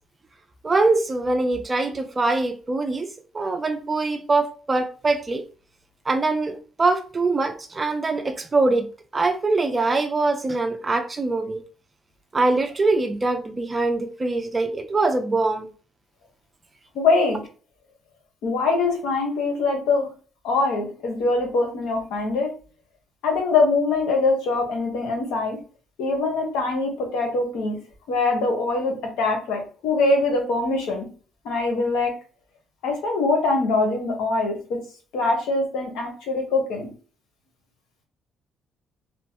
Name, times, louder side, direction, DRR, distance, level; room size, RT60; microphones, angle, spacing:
voice 1, 0.6-5.4 6.1-8.9 9.1-11.6 12.3-15.7, right 3 dB, 25° right, 0.4 m, -23 dB
voice 2, 16.9-17.4 18.4-20.1 20.4-22.5 23.2-25.6 26.0-27.8 28.1-31.1 31.4-32.1 32.8-34.5 35.1-36.9, left 3 dB, 85° left, 1.0 m, -23 dB
3.0 x 2.1 x 2.7 m
cardioid pair, 95°, 0 cm